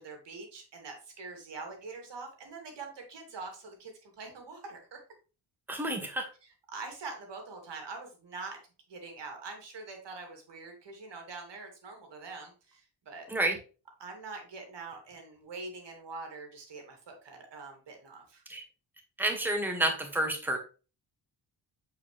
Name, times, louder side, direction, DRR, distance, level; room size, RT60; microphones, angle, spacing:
voice 1, 0.0-5.0 6.7-8.6 8.9-13.2 14.0-18.4, right 3 dB, 70° right, 3 dB, 2.5 m, -44 dB
voice 2, 5.7-6.3 13.3-13.6 18.5-18.6 19.2-20.6, right 1 dB, 5° right, 3 dB, 1.6 m, -29 dB
8.2 x 4.6 x 3.2 m, 0.34 s
cardioid pair, 80°, 44 cm